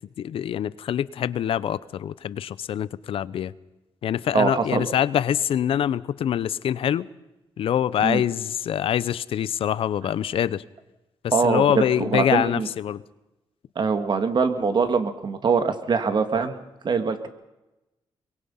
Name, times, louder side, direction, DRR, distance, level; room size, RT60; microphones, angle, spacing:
voice 1, 0.2-3.5 4.0-7.1 7.6-10.6 11.2-13.0, left 10 dB, 75° left, 18 dB, 0.7 m, -25 dB
voice 2, 4.3-4.9 8.0-8.2 11.3-12.7 13.8-17.3, right 5 dB, 50° right, 8 dB, 2.2 m, -23 dB
23.0 x 22.5 x 5.7 m, 0.99 s
cardioid pair, 80°, 10 cm